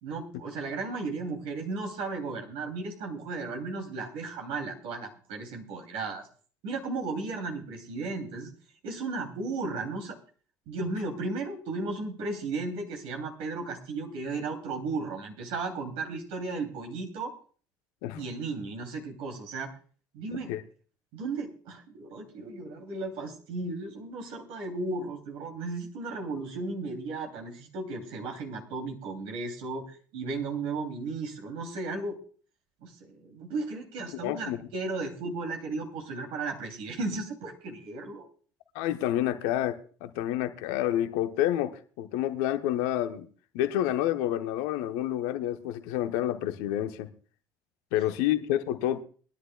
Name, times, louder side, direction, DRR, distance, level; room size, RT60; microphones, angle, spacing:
voice 1, 0.0-6.3 6.6-8.5 8.8-10.2 10.7-17.3 18.2-19.7 20.1-20.5 21.1-32.2 32.8-38.3, right 3 dB, 65° right, 2.9 m, -35 dB
voice 2, 34.2-34.7 38.7-41.7 42.0-43.3 43.5-47.1 47.9-49.0, left 12 dB, 70° left, 0.9 m, -29 dB
22.0 x 11.0 x 2.3 m
hypercardioid pair, 55°, 10 cm